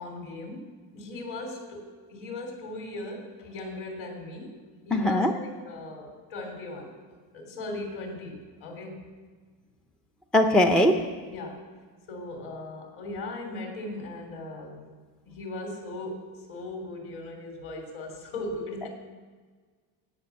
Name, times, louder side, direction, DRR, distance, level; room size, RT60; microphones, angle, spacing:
voice 1, 0.0-4.6 4.9-7.0 7.3-9.1 10.6-10.7 11.3-11.7 12.1-15.0 15.3-18.9, left 2 dB, 55° left, 2 dB, 3.4 m, -38 dB
voice 2, 4.9-5.3 10.3-10.9, left 1 dB, ahead, 5 dB, 0.4 m, -20 dB
17.0 x 6.0 x 8.5 m, 1.5 s
cardioid pair, 160°, 46 cm